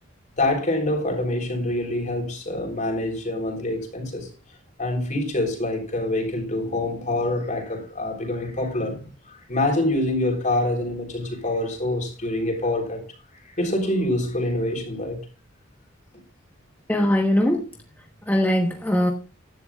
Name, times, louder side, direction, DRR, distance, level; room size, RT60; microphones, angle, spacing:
voice 1, 0.4-4.3 4.8-13.0 13.4-15.2, left 1 dB, 40° left, 3.6 m, -26 dB
voice 2, 16.9-17.7 18.3-19.1, left 1 dB, 10° left, 1.1 m, -20 dB
15.5 x 11.0 x 2.4 m
head